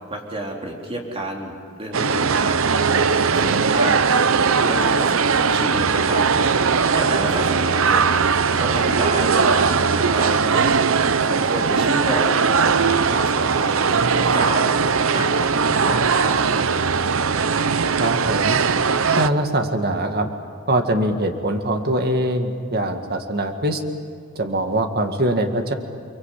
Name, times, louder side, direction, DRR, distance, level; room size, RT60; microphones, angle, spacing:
voice 1, 0.1-4.1 4.6-6.2 6.9-8.0 8.6-14.8 15.1-16.4, right 1 dB, 25° right, 0 dB, 4.0 m, -30 dB
sound 1, 1.9-19.3, right 5 dB, 70° right, 0.8 m, -19 dB
voice 2, 18.0-18.6 19.2-20.3 20.7-23.8 24.4-25.7, right 1 dB, 50° right, 5 dB, 2.0 m, -22 dB
30.0 x 23.0 x 8.5 m, 2.1 s
head